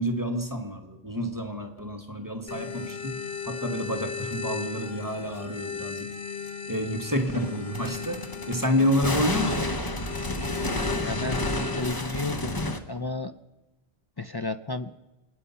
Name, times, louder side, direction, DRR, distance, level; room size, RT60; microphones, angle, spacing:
voice 1, 0.0-6.1 6.7-9.9, equal, 20° right, 4 dB, 1.4 m, -29 dB
sound 1, 2.5-11.8, left 6 dB, 70° left, 1.3 m, -36 dB
sound 2, 2.9-3.0 4.3-4.4 6.5-6.6 7.2-12.8, left 1 dB, 20° left, 0.9 m, -31 dB
voice 2, 10.9-11.4 11.7-13.3 14.2-14.9, left 3 dB, 40° left, 10 dB, 0.3 m, -33 dB
26.5 x 9.5 x 5.6 m, 1.1 s
omnidirectional pair, 1.1 m